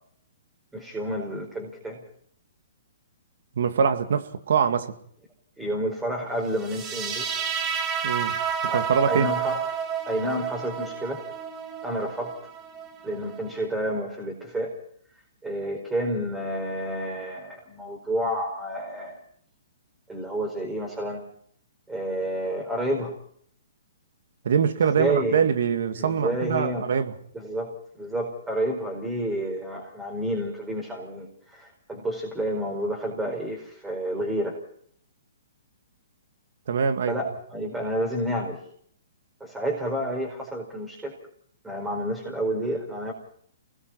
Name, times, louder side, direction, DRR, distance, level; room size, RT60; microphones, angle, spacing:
voice 1, 0.7-2.0 5.6-7.2 8.7-8.8 9.1-9.6 10.1-11.2 11.8-12.4 13.0-14.8 15.4-19.2 20.1-21.2 21.9-23.1 24.9-25.4 25.9-26.9 27.3-34.6 37.1-38.6 39.4-41.2 41.6-43.1, right 1 dB, 10° right, 4.8 m, -30 dB
voice 2, 3.6-4.9 8.0-8.4 8.6-9.3 24.4-27.1 36.7-37.2, right 7 dB, 65° right, 2.1 m, -24 dB
sound 1, 6.6-13.7, right 7 dB, 25° right, 2.2 m, -30 dB
29.0 x 20.5 x 4.6 m
hypercardioid pair, 140°, 0 cm